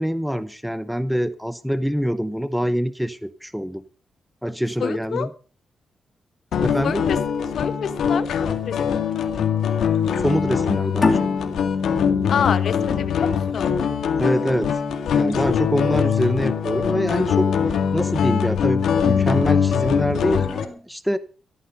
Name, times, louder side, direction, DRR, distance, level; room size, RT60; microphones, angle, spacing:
voice 1, 0.0-3.8 4.4-5.3 6.6-7.0 10.2-11.2 14.2-14.7 15.1-17.5 17.9-21.2, equal, ahead, 13 dB, 0.8 m, -24 dB
voice 2, 4.8-5.3 6.8-7.2 7.6-9.1 12.3-13.7, left 7 dB, 70° left, 12 dB, 1.3 m, -27 dB
sound 1, 6.5-20.6, left 7 dB, 90° left, 2.1 m, -22 dB
sound 2, 11.0-14.2, left 3 dB, 35° left, 3.1 m, -26 dB
14.5 x 13.5 x 5.3 m, 0.38 s
wide cardioid pair, 125°, 0 cm